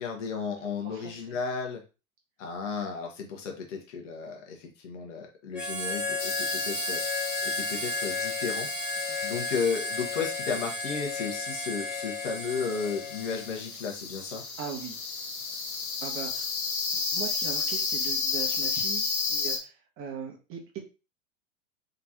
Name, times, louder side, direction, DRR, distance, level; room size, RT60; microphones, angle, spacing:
voice 1, 0.0-1.8 2.4-7.0 7.4-8.7 9.2-14.4, left 5 dB, 60° left, 2 dB, 1.5 m, -34 dB
voice 2, 0.8-1.4 9.1-9.3 14.6-15.0 16.0-16.5 16.9-20.8, right 7 dB, 30° right, 1 dB, 1.5 m, -40 dB
Harmonica, 5.5-13.6, left 3 dB, ahead, 0.9 m, -33 dB
sound 1, 6.2-19.6, left 4 dB, 80° left, 1.1 m, -33 dB
3.7 x 3.7 x 3.0 m, 0.31 s
hypercardioid pair, 105°, 42 cm